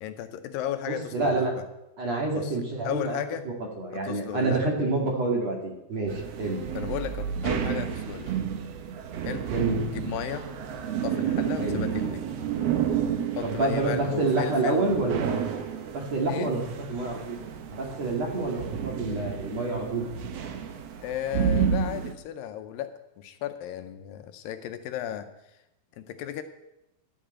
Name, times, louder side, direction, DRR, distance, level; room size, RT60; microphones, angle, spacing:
voice 1, 0.0-1.6 2.3-2.6 2.8-3.5 3.9-4.6 6.7-8.4 9.2-9.5 9.8-10.5 11.0-12.2 13.4-14.8 16.3-16.5 21.0-25.6 26.0-26.4, left 11 dB, 80° left, 9 dB, 2.3 m, -35 dB
voice 2, 0.9-1.5 2.0-3.2 3.8-6.6 9.5-9.8 11.6-11.8 13.4-15.5 15.9-16.6 16.9-17.4 17.7-20.0, right 3 dB, 50° right, 0 dB, 3.1 m, -27 dB
sound 1, 6.1-22.1, right 8 dB, 70° right, 1.5 m, -31 dB
12.0 x 7.2 x 8.8 m, 0.91 s
omnidirectional pair, 4.2 m